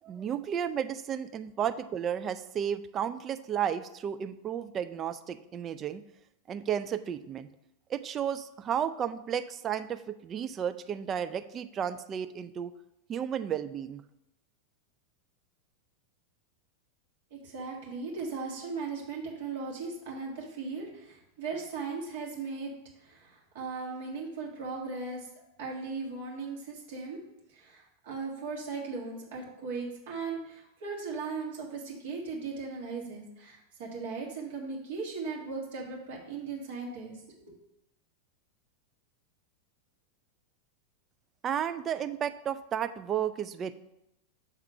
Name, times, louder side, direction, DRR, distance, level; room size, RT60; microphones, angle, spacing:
voice 1, 0.0-6.0 6.5-7.5 7.9-12.7 13.1-14.0 41.4-43.7, right 9 dB, 25° right, 10 dB, 0.4 m, -33 dB
voice 2, 17.3-22.7 23.0-25.3 25.6-27.2 27.5-37.2, right 4 dB, 55° right, -1 dB, 1.6 m, -38 dB
6.7 x 3.6 x 5.4 m, 0.86 s
figure-of-eight pair, 90°, 0 cm